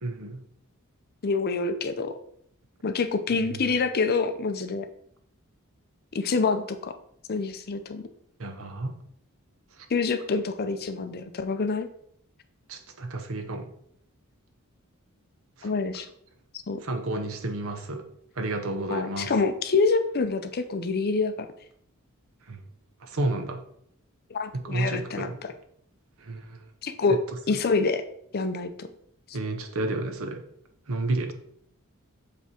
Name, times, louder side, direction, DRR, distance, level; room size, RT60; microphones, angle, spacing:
voice 1, 0.0-0.4 3.4-3.6 8.4-9.0 9.8-9.9 12.7-13.7 15.6-15.7 16.8-18.1 18.4-19.3 22.4-22.6 23.0-23.6 24.5-25.4 26.2-26.7 27.5-27.6 29.3-30.4 30.9-31.3, right 2 dB, 65° right, 6 dB, 0.9 m, -31 dB
voice 2, 1.2-2.2 2.8-4.9 6.1-6.9 7.3-8.0 9.9-11.9 15.6-16.1 16.7-16.8 18.9-21.5 24.3-25.3 26.8-27.2 27.5-28.0 28.3-28.9, left 4 dB, 45° left, 9 dB, 0.5 m, -26 dB
7.1 x 3.5 x 4.3 m, 0.69 s
head